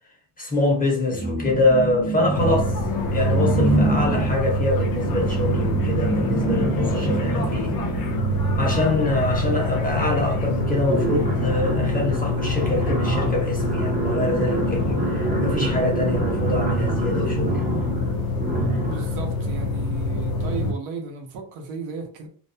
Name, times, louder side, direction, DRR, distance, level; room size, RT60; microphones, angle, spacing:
voice 1, 0.4-2.7 3.1-7.7 8.6-17.6, left 2 dB, 20° left, 0.8 m, -24 dB
sound 1, 1.1-2.9 3.3-9.0 10.0-10.1 10.3-19.2, right 3 dB, 20° right, 0.6 m, -27 dB
sound 2, 2.3-20.7, left 2 dB, 50° left, 0.6 m, -25 dB
voice 2, 18.8-22.3, right 4 dB, 85° right, 0.9 m, -34 dB
2.5 x 2.2 x 2.6 m
cardioid pair, 125°, 46 cm